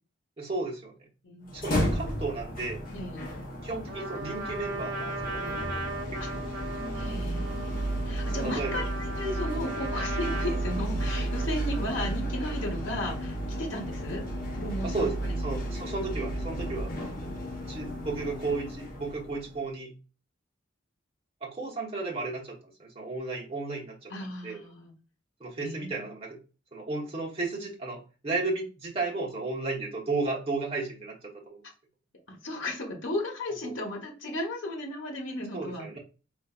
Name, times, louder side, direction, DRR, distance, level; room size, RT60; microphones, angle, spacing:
voice 1, 0.4-0.9 1.5-2.8 3.6-5.5 6.1-6.5 8.4-8.8 14.8-16.9 17.7-19.9 21.4-24.1 24.4-24.6 25.4-26.4 26.7-31.6 35.5-36.0, right 3 dB, 30° right, -3 dB, 1.0 m, -34 dB
voice 2, 1.2-1.6 2.9-3.3 6.2-6.3 6.9-14.2 14.5-15.4 24.1-24.9 25.6-26.1 32.3-35.9, left 1 dB, 75° left, 0 dB, 1.0 m, -35 dB
sound 1, 1.5-19.6, right 1 dB, 50° left, 0.7 m, -33 dB
Trumpet, 3.9-12.0, right 2 dB, 75° right, 0.8 m, -38 dB
3.9 x 2.5 x 2.3 m, 0.34 s
head